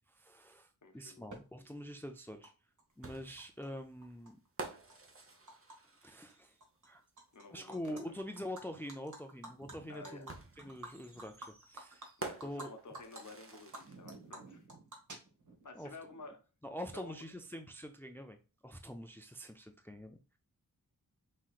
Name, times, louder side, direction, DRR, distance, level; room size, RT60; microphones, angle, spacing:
voice 1, 0.1-2.5 3.0-4.4 6.0-6.6 6.9-7.0 7.5-12.1 12.4-12.7 15.7-15.9 16.6-18.4 18.6-20.2, equal, 5° left, 6 dB, 0.5 m, -45 dB
voice 2, 0.8-1.3 7.3-8.2 9.9-10.3 12.2-14.6 15.6-16.4 16.9-17.1, left 3 dB, 55° left, 5 dB, 0.9 m, -51 dB
Animal, 1.3-1.4 2.4-2.5 2.8-3.7 4.0-5.8 6.1-6.3 6.6-7.4 7.7-8.0 8.4-12.7 12.9-13.2 13.5-15.6, right 2 dB, 55° right, 1.4 m, -50 dB
sound 1, 3.0-6.7 8.2-8.3 10.3-14.2, right 3 dB, 35° right, 1.0 m, -49 dB
5.6 x 3.1 x 2.4 m, 0.32 s
wide cardioid pair, 70°, 37 cm